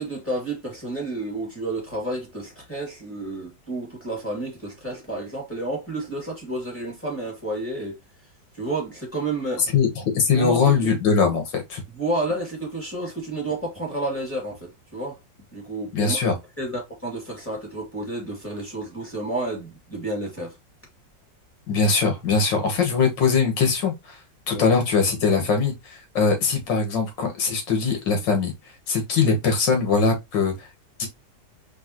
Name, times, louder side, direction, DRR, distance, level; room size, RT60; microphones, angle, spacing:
voice 1, 0.0-7.9 8.5-9.6 10.3-10.9 11.9-15.2 15.5-16.2 16.6-20.5 24.5-24.7, right 2 dB, 5° left, 2.1 m, -30 dB
voice 2, 9.7-11.8 15.9-16.4 21.7-24.2 24.5-25.7 26.2-28.5 28.9-30.5 31.0-31.1, left 5 dB, 85° left, 2.0 m, -21 dB
4.7 x 3.4 x 3.0 m
omnidirectional pair, 1.9 m